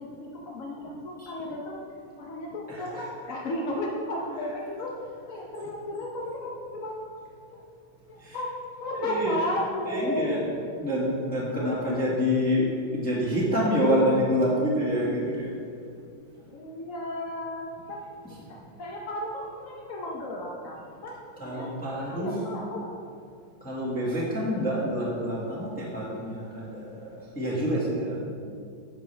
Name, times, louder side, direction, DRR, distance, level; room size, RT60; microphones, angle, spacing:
voice 1, 0.0-1.8 2.2-4.9 5.3-7.0 7.5-7.6 8.1-8.5 8.8-10.4 11.6-12.4 16.4-18.0 18.5-21.2 21.4-21.7 22.0-23.0, left 1 dB, 55° left, -2 dB, 1.0 m, -34 dB
voice 2, 2.7-3.1 4.3-4.5 8.2-8.5 8.9-9.4 9.8-10.4 10.8-12.7 12.9-15.5 18.3-18.4 21.4-22.5 23.6-28.2, equal, 5° left, -7 dB, 1.6 m, -27 dB
10.5 x 7.7 x 3.3 m, 2.3 s
omnidirectional pair, 2.2 m